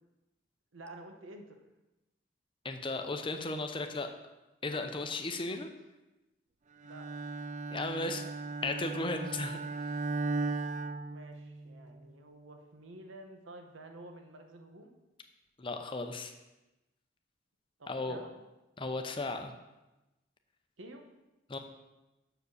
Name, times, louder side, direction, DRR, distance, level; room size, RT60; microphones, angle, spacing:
voice 1, 0.7-1.6 5.2-5.6 6.8-7.1 7.9-8.3 11.1-15.0 17.8-18.4 20.8-21.0, right 1 dB, 75° right, 4 dB, 1.0 m, -50 dB
voice 2, 2.6-4.1 4.6-5.7 7.7-8.2 8.6-9.6 15.6-16.3 17.9-18.2 18.8-19.5 21.5-21.6, left 2 dB, 25° left, 6 dB, 0.6 m, -35 dB
Bowed string instrument, 6.8-11.8, right 3 dB, 35° right, 0.4 m, -37 dB
6.6 x 4.9 x 6.5 m, 1.0 s
head